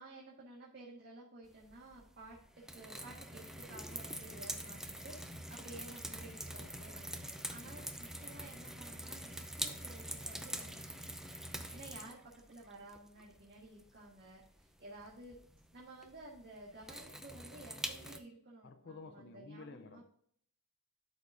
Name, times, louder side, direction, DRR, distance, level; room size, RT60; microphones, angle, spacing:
voice 1, 0.0-15.4 15.7-20.0, right 2 dB, 50° right, 1.6 m, -54 dB
sound 1, 1.6-18.2, right 1 dB, ahead, 0.6 m, -45 dB
voice 2, 18.6-20.0, left 3 dB, 55° left, 0.6 m, -52 dB
12.0 x 5.2 x 2.6 m
head